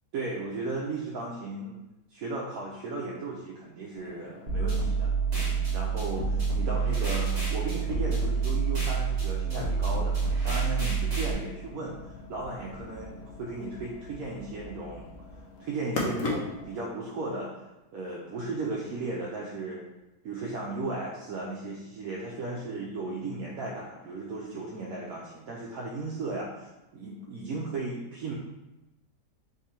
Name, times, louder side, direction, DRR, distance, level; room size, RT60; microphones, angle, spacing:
voice 1, 0.1-1.8 2.1-10.2 10.4-12.0 12.3-15.1 15.6-17.5 17.9-19.8 20.2-28.3, right 2 dB, 65° right, -4 dB, 1.0 m, -35 dB
sound 1, 4.0-16.8, left 3 dB, 65° left, 1.1 m, -41 dB
sound 2, 4.5-11.3, right 5 dB, 30° right, 1.1 m, -27 dB
3.7 x 3.0 x 4.2 m, 0.96 s
omnidirectional pair, 1.8 m